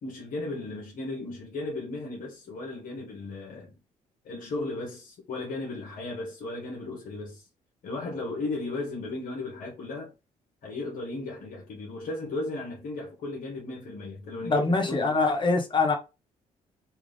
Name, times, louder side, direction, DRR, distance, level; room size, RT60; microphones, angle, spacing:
voice 1, 0.0-3.7 4.2-7.5 7.8-10.1 10.6-15.2, left 2 dB, 70° left, 1.3 m, -35 dB
voice 2, 14.4-16.0, left 3 dB, 35° left, 1.0 m, -24 dB
3.5 x 2.5 x 3.3 m
cardioid pair, 80°, 15 cm